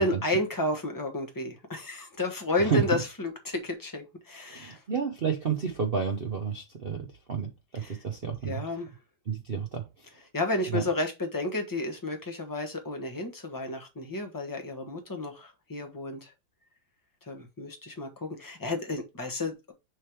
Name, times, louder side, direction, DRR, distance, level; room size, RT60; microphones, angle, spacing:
voice 1, 0.0-4.8 7.8-8.0 8.4-8.9 10.3-16.3 17.3-19.7, left 2 dB, 15° left, 1.0 m, -31 dB
voice 2, 4.5-8.7 9.3-10.2 10.7-10.9, right 6 dB, 80° right, 0.5 m, -31 dB
6.3 x 3.4 x 4.6 m
omnidirectional pair, 2.3 m